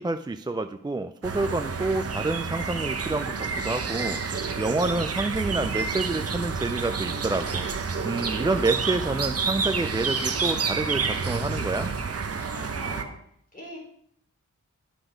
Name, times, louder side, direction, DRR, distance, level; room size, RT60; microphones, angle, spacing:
voice 1, 0.0-11.9, right 2 dB, 15° right, 8 dB, 0.3 m, -28 dB
sound 1, 1.2-13.0, right 5 dB, 50° right, 0.8 m, -29 dB
voice 2, 12.5-13.1 13.5-13.8, equal, 25° left, -3 dB, 4.3 m, -40 dB
10.0 x 6.0 x 5.0 m, 0.67 s
wide cardioid pair, 130°, 31 cm